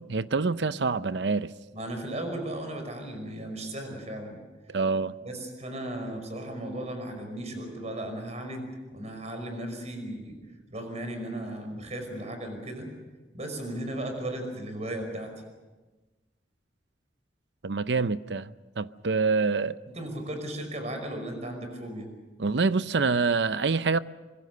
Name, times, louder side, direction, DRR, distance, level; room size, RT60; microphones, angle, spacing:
voice 1, 0.0-1.5 4.7-5.1 17.6-19.8 22.4-24.0, right 4 dB, 70° right, 0.7 m, -26 dB
voice 2, 1.7-4.4 5.2-10.4 10.7-12.9 13.3-15.3 19.9-22.1, right 1 dB, 40° right, 5.5 m, -36 dB
25.5 x 22.0 x 6.7 m
head